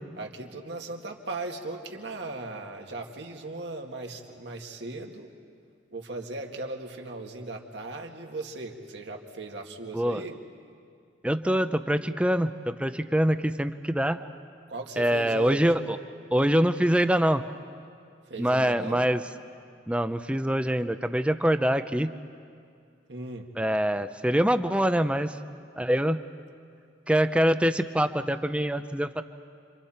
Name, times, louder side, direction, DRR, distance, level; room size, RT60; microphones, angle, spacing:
voice 1, 0.2-5.3 5.9-10.4 14.7-15.7 18.3-19.1 23.1-23.5, right 2 dB, 70° right, 2 dB, 2.0 m, -37 dB
voice 2, 11.2-14.2 15.0-15.8 16.3-17.4 18.4-19.2 19.9-22.1 23.6-25.4 25.8-26.2 27.1-29.2, equal, 5° right, 10 dB, 0.6 m, -24 dB
30.0 x 25.5 x 4.4 m, 2.3 s
head